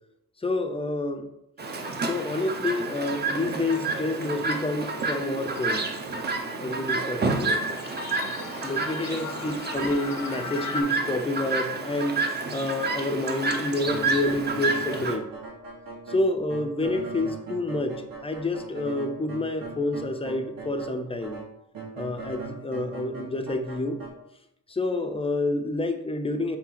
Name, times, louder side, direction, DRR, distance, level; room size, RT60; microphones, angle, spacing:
voice 1, 0.4-1.3 2.0-5.9 6.6-7.7 8.6-15.3 16.1-21.4 21.9-24.0 24.7-26.6, left 2 dB, 15° left, 6 dB, 0.5 m, -28 dB
Chirp tweet, 1.6-15.2, right 3 dB, 30° right, 0.6 m, -30 dB
sound 1, 5.4-10.8, left 6 dB, 60° left, 0.7 m, -40 dB
sound 2, 13.8-20.9 21.2-24.1, right 4 dB, 70° right, 1.9 m, -39 dB
4.9 x 3.7 x 5.7 m, 0.81 s
wide cardioid pair, 160°, 35 cm